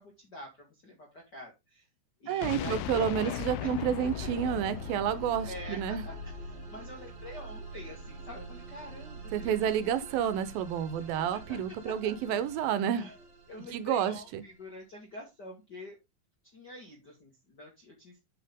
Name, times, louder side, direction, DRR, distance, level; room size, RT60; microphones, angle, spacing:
voice 1, 0.0-1.9 2.2-3.7 4.2-4.3 5.4-10.3 11.0-11.6 11.8-12.2 13.0-13.2 13.5-16.0 16.5-18.2, left 1 dB, 45° left, 1.4 m, -46 dB
voice 2, 2.3-6.0 9.3-13.1 13.7-14.4, right 9 dB, 80° right, 2.6 m, -30 dB
sound 1, 2.4-6.4, left 13 dB, 85° left, 2.5 m, -38 dB
sound 2, 4.1-14.7, right 1 dB, 40° right, 3.1 m, -45 dB
8.1 x 5.8 x 3.6 m
omnidirectional pair, 4.2 m